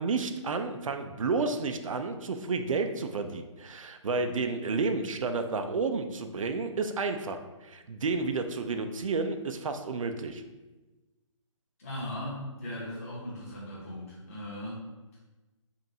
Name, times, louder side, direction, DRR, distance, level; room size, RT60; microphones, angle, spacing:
voice 1, 0.0-10.4, right 4 dB, 80° right, 7 dB, 0.5 m, -31 dB
voice 2, 11.8-14.8, left 1 dB, 30° left, -8 dB, 1.2 m, -38 dB
5.4 x 2.5 x 2.8 m, 1.1 s
hypercardioid pair, 175°, 17 cm